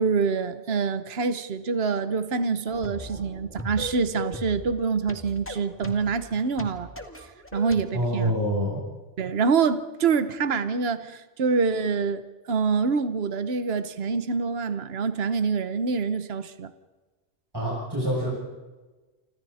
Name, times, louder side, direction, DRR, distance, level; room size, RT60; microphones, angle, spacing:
voice 1, 0.0-6.9 7.5-8.5 9.2-16.7, right 5 dB, 60° right, 1.3 m, -26 dB
sound 1, 2.7-7.8, left 1 dB, 10° left, 2.2 m, -38 dB
voice 2, 7.9-8.8 17.5-18.3, equal, 20° right, 7.8 m, -26 dB
29.0 x 26.0 x 4.3 m
omnidirectional pair, 1.2 m